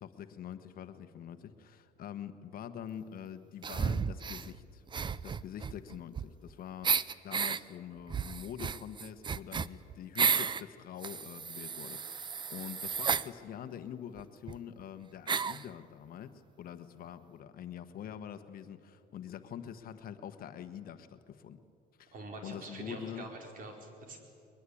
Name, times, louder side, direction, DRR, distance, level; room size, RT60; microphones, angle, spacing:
voice 1, 0.0-4.8 5.2-21.6 22.0-23.3, left 9 dB, 60° left, 10 dB, 1.3 m, -45 dB
sound 1, 3.6-4.5 4.9-6.5 6.8-7.6 8.1-10.6 11.0-13.3 14.2-14.3 14.5-14.6 15.3-15.6, right 6 dB, 25° right, 0.6 m, -33 dB
voice 2, 22.1-24.2, right 2 dB, 55° right, 3 dB, 4.6 m, -45 dB
21.5 x 21.5 x 8.6 m, 2.5 s
cardioid pair, 110°, 17 cm